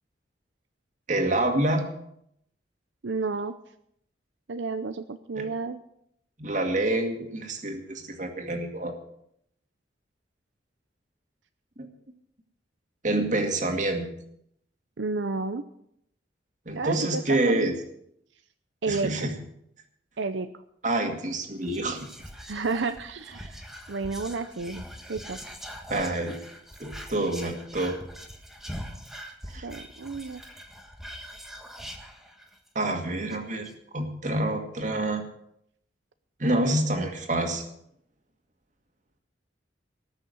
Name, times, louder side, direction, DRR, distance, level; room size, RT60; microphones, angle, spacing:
voice 1, 1.1-1.9 5.4-5.5 6.4-8.9 11.8-11.9 13.0-14.1 16.7-17.7 18.9-19.3 20.8-22.1 25.9-26.4 26.8-28.0 29.5-29.7 32.8-35.2 36.4-37.6, right 1 dB, 40° right, 4 dB, 2.1 m, -27 dB
voice 2, 3.0-3.6 4.5-5.8 15.0-15.7 16.7-17.6 18.8-19.3 20.2-20.5 22.4-24.8 25.1-25.4 29.6-30.4, right 4 dB, 80° right, 10 dB, 0.7 m, -31 dB
Whispering, 21.6-32.7 33.0-33.1 33.3-33.7, equal, ahead, 1.5 m, -43 dB
19.0 x 6.5 x 7.9 m, 0.74 s
head